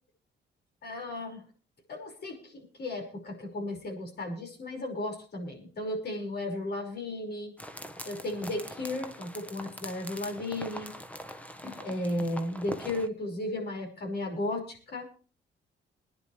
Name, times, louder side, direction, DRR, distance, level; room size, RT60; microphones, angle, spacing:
voice 1, 0.8-1.4 1.9-7.5 8.1-10.9 11.6-15.0, left 1 dB, 55° left, 2 dB, 5.6 m, -35 dB
sound 1, 7.6-13.1, equal, 5° left, 1.2 m, -43 dB
23.0 x 10.5 x 3.4 m, 0.39 s
cardioid pair, 90°, 20 cm